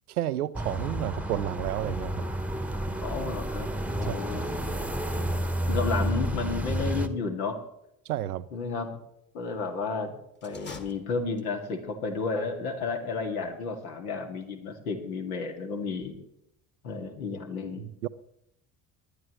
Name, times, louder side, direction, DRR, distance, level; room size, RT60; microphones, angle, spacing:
voice 1, 0.1-2.2 4.0-4.2 8.1-8.5 17.8-18.1, right 12 dB, 85° right, 0.5 m, -31 dB
sound 1, 0.5-7.1, right 1 dB, 5° right, 1.1 m, -30 dB
voice 2, 3.0-4.8 5.7-7.6 8.5-9.0 9.3-16.2 16.8-17.9, left 4 dB, 75° left, 2.2 m, -32 dB
sound 2, 10.4-11.7, left 3 dB, 25° left, 1.8 m, -46 dB
19.0 x 11.5 x 3.1 m
figure-of-eight pair, 55°, 43 cm